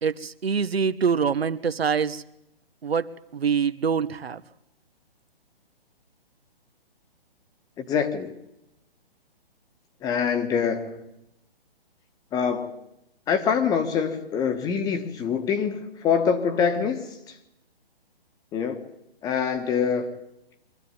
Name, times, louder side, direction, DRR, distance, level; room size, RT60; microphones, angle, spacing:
voice 1, 0.0-2.2 2.8-4.4, right 6 dB, 80° right, 14 dB, 1.4 m, -25 dB
voice 2, 7.8-8.4 10.0-11.0 12.3-12.7 13.3-17.4 18.5-18.8 19.2-20.1, left 6 dB, 10° left, 8 dB, 1.3 m, -25 dB
23.5 x 14.5 x 9.7 m, 0.86 s
hypercardioid pair, 155°, 30 cm